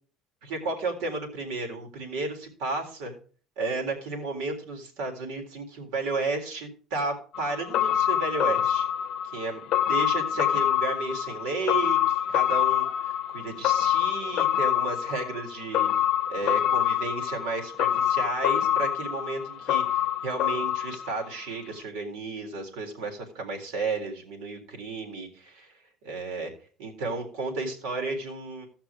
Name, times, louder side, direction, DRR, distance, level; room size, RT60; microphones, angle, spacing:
voice 1, 0.4-3.2 3.6-8.9 9.3-9.6 9.9-15.9 16.3-25.7 26.0-26.5 26.8-28.7, right 3 dB, 80° right, 2 dB, 3.8 m, -33 dB
sound 1, 7.3-21.5 21.8-21.9, left 11 dB, 55° left, 0.7 m, -26 dB
15.5 x 5.9 x 4.9 m, 0.41 s
cardioid pair, 140°, 0 cm